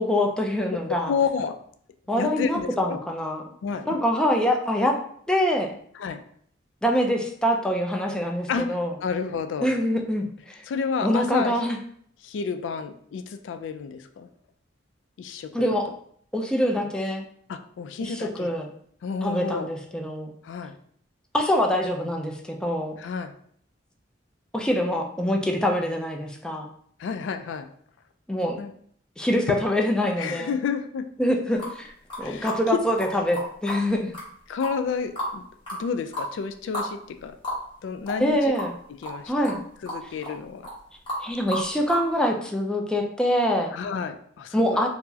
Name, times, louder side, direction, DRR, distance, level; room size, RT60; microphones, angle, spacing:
voice 1, 0.0-1.1 2.1-3.4 3.9-4.9 5.3-5.7 6.8-8.9 9.6-10.6 11.0-11.8 15.5-15.9 16.3-17.2 18.0-18.7 19.2-20.3 21.3-22.9 24.5-26.7 28.3-28.6 29.2-30.5 31.2-34.1 38.2-38.7 39.3-39.6 41.2-43.7 44.5-44.9, equal, 5° left, 1 dB, 0.3 m, -24 dB
voice 2, 1.1-1.6 2.2-3.0 3.6-4.0 5.9-6.2 8.5-9.7 10.7-11.6 12.2-14.3 15.2-16.0 17.5-18.5 19.0-19.7 20.4-20.7 23.0-23.3 27.0-27.7 28.6-28.7 29.5-29.6 30.2-31.1 32.2-32.8 34.5-35.5 35.8-37.4 37.8-38.4 39.0-40.7 43.7-44.8, left 6 dB, 85° left, 9 dB, 0.3 m, -30 dB
sound 1, 31.6-31.7 32.1-32.6 33.0-33.1 33.3-33.8 34.1-34.2 34.6-35.4 35.7-35.8 36.1-36.3 36.7-36.9 37.2-37.3 37.4-37.6 38.1-38.3 38.5-38.7 39.0-39.2 39.4-39.6 39.9-40.4 40.6-40.8 41.1-41.2 41.5-42.0, left 1 dB, 25° left, 1.2 m, -32 dB
4.4 x 2.0 x 2.7 m, 0.63 s
head